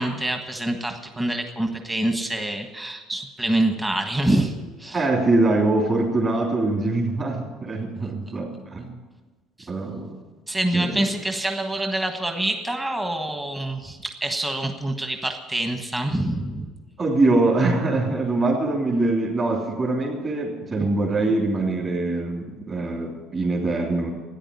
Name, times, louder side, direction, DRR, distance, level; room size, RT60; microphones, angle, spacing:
voice 1, 0.0-5.0 10.5-16.7, right 1 dB, 10° right, 4 dB, 1.5 m, -26 dB
voice 2, 4.9-9.0 9.7-10.1 10.7-11.0 17.0-24.1, right 2 dB, 25° right, -5 dB, 3.4 m, -23 dB
13.5 x 10.0 x 9.8 m, 1.3 s
cardioid pair, 135°, 0 cm